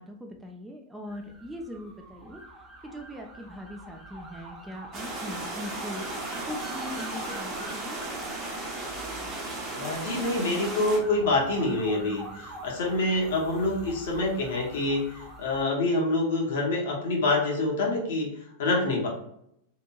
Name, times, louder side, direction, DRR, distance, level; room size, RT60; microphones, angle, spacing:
voice 1, 0.0-2.4 2.8-8.1, left 1 dB, 10° right, 2 dB, 0.3 m, -41 dB
sound 1, 1.1-15.6, right 1 dB, 5° left, 0.7 m, -45 dB
sound 2, 4.9-11.0, right 2 dB, 35° right, 0.9 m, -35 dB
voice 2, 9.7-18.3 18.6-19.1, left 2 dB, 55° left, -1 dB, 0.8 m, -26 dB
2.9 x 2.5 x 2.2 m, 0.74 s
figure-of-eight pair, 90°, 0 cm